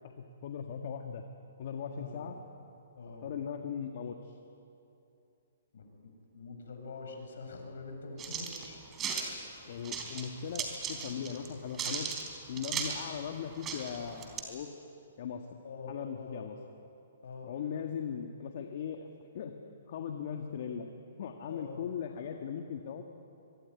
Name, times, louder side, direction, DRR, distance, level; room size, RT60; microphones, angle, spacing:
voice 1, 0.0-1.2 1.6-2.4 3.2-4.4 9.7-12.1 12.5-14.8 15.2-15.4 15.9-16.6 17.4-19.1 19.3-19.5 19.9-20.9 21.2-23.0, left 7 dB, 55° left, 4 dB, 1.7 m, -39 dB
voice 2, 2.0-2.3 3.0-3.3 5.7-8.8 9.5-9.7 15.6-16.4 17.2-17.5 21.5-21.8, left 4 dB, 70° left, 3 dB, 7.2 m, -45 dB
sound 1, 8.2-9.3 9.8-10.3 10.6-11.5 11.7-13.0 13.3-13.4 13.6-14.4, right 6 dB, 20° right, 3.8 m, -36 dB
24.0 x 23.0 x 9.7 m, 2.7 s
hypercardioid pair, 145°, 0 cm